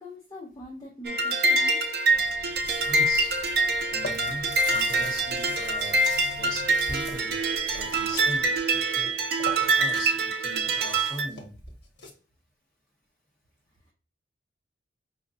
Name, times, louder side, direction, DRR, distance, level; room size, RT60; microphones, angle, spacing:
voice 1, 0.0-1.8, left 1 dB, 20° left, -4 dB, 0.7 m, -42 dB
sound 1, 1.0-11.3, right 2 dB, 55° right, 0.4 m, -25 dB
sound 2, 1.7-1.8 2.4-3.1 3.7-4.1 4.7-7.3 7.7-8.6 9.0-10.1 10.4-12.1, left 3 dB, 70° left, 1.0 m, -43 dB
Chewing mastication, 2.1-8.5, right 3 dB, 80° right, 0.7 m, -45 dB
voice 2, 2.8-3.3 3.9-7.3 7.7-8.5 8.9-9.1 9.8-11.5, equal, ahead, -8 dB, 1.7 m, -39 dB
5.0 x 2.4 x 2.7 m, 0.38 s
head